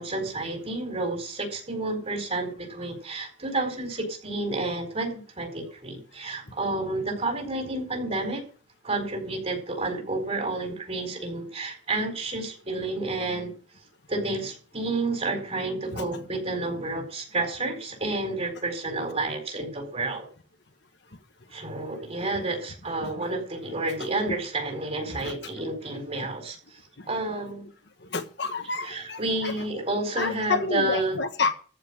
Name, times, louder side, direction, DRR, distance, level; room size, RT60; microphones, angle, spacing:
voice 1, 0.0-8.4 8.8-13.5 14.1-20.3 21.5-26.8 27.1-27.7 28.8-31.2, right 2 dB, 35° right, 4 dB, 4.4 m, -30 dB
voice 2, 28.1-29.5 30.2-31.5, left 4 dB, 65° left, 8 dB, 1.4 m, -29 dB
14.5 x 5.7 x 8.6 m, 0.39 s
head